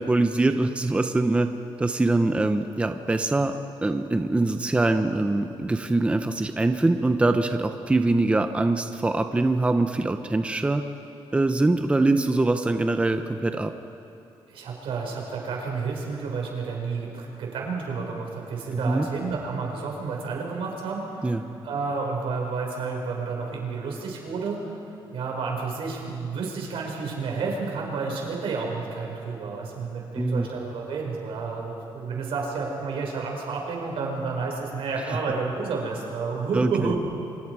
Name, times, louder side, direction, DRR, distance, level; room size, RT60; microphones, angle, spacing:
voice 1, 0.0-1.5 1.8-10.8 11.3-13.7 18.7-19.1 21.2-21.4 30.1-30.5 36.5-36.9, right 2 dB, 10° right, 7 dB, 0.8 m, -23 dB
voice 2, 14.5-21.3 21.6-24.6 25.1-37.0, right 4 dB, 80° right, -1 dB, 5.4 m, -30 dB
28.0 x 26.0 x 4.9 m, 2.8 s
cardioid pair, 140°, 9 cm